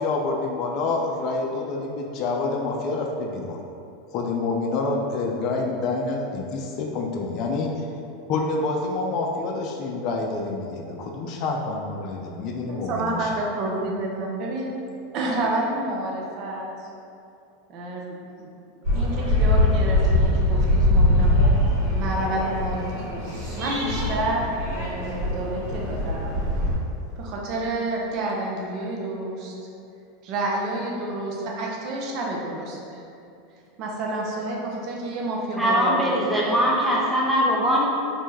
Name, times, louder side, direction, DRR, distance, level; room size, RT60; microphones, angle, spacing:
voice 1, 0.0-3.6 4.1-7.7 8.3-13.2, left 3 dB, 50° left, 0 dB, 0.3 m, -27 dB
voice 2, 12.7-14.7 15.1-16.9 17.7-18.5 18.9-21.5 21.9-26.4 27.2-29.5 30.2-33.0 33.8-36.6, right 2 dB, 50° right, -2 dB, 0.5 m, -29 dB
sound 1, 18.8-26.7, left 1 dB, 75° right, 1.4 m, -22 dB
voice 3, 35.6-37.9, equal, 5° right, -4 dB, 0.6 m, -21 dB
2.6 x 2.1 x 3.1 m, 2.6 s
hypercardioid pair, 100°, 0 cm